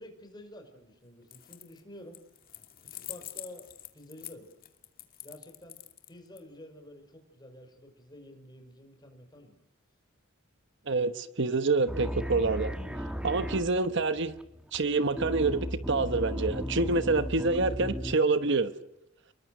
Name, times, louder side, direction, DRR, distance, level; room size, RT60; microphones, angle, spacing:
voice 1, 0.0-2.2 2.8-4.5 5.2-5.8 6.1-9.5, left 1 dB, 20° left, 5 dB, 5.6 m, -50 dB
sound 1, 1.2-1.8 2.1-6.4, left 13 dB, 45° left, 2.3 m, -45 dB
voice 2, 10.9-14.4 14.7-18.7, right 3 dB, 55° right, 11 dB, 1.2 m, -27 dB
sound 2, 11.9-18.1, equal, 5° right, 1.8 m, -36 dB
30.0 x 22.0 x 6.7 m, 0.85 s
head